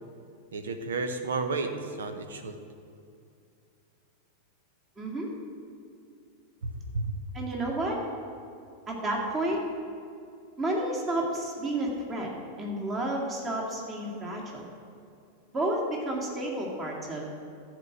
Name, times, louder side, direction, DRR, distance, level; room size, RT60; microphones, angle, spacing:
voice 1, 0.5-1.7 2.0-2.6 6.6-7.1, right 3 dB, 65° right, 7 dB, 0.9 m, -32 dB
voice 2, 5.0-5.3 7.3-8.0 8.9-9.6 10.6-12.3 12.6-14.7 15.5-17.3, right 1 dB, 20° right, -2 dB, 2.2 m, -31 dB
13.5 x 4.9 x 7.8 m, 2.5 s
figure-of-eight pair, 90°, 0 cm